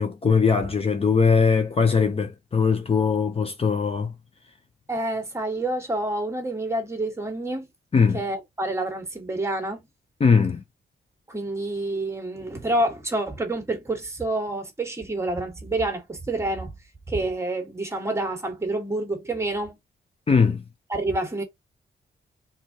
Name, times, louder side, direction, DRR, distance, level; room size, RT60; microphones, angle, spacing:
voice 1, 0.0-4.1 7.9-8.2 10.2-10.6 20.3-20.6, left 5 dB, 35° left, 0.7 m, -20 dB
voice 2, 4.9-7.7 8.1-9.8 11.3-16.7 17.1-19.8 20.9-21.4, right 2 dB, 15° right, 1.6 m, -28 dB
4.5 x 3.7 x 2.9 m
cardioid pair, 115°, 18 cm